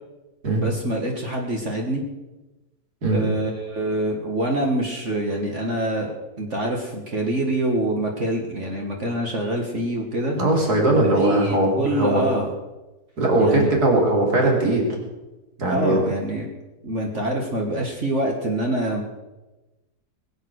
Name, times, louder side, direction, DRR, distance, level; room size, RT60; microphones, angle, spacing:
voice 1, 0.6-2.0 3.1-10.4 11.0-12.5 13.4-13.7 15.7-16.5 16.8-19.0, right 1 dB, 45° right, 0 dB, 2.0 m, -25 dB
voice 2, 10.4-12.2 13.2-14.9 15.6-16.0, right 2 dB, 65° right, -1 dB, 3.9 m, -20 dB
21.0 x 8.4 x 6.4 m, 1.1 s
omnidirectional pair, 1.8 m